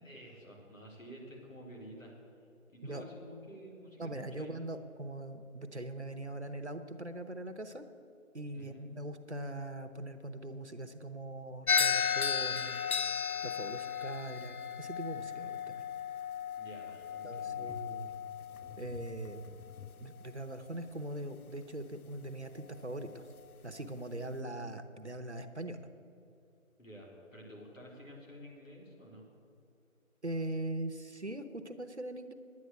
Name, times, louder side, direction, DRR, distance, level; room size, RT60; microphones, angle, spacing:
voice 1, 0.0-2.1 2.7-4.5 8.5-8.9 16.6-17.7 24.0-24.8 26.8-29.3, equal, 65° left, -2 dB, 3.8 m, -51 dB
voice 2, 4.0-7.8 8.3-12.9 13.1-15.7 17.2-18.1 18.8-19.6 20.0-23.3 23.6-25.8 30.2-32.3, right 1 dB, 55° right, 7 dB, 0.8 m, -41 dB
sound 1, 11.7-20.0, left 7 dB, 85° left, 0.6 m, -35 dB
11.0 x 9.6 x 7.6 m, 2.7 s
figure-of-eight pair, 180°, 42 cm